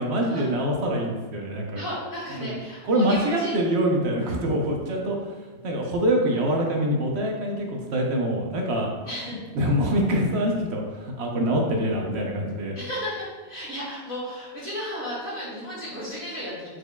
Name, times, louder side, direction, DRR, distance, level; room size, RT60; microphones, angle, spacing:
voice 1, 0.0-1.8 2.4-2.6 2.8-5.3 5.6-8.9 9.5-12.8, equal, 75° right, 0 dB, 1.0 m, -25 dB
voice 2, 1.8-3.6 4.2-4.4 9.1-9.4 12.7-16.8, equal, 55° left, -13 dB, 1.9 m, -34 dB
4.6 x 4.5 x 2.2 m, 1.4 s
omnidirectional pair, 1.1 m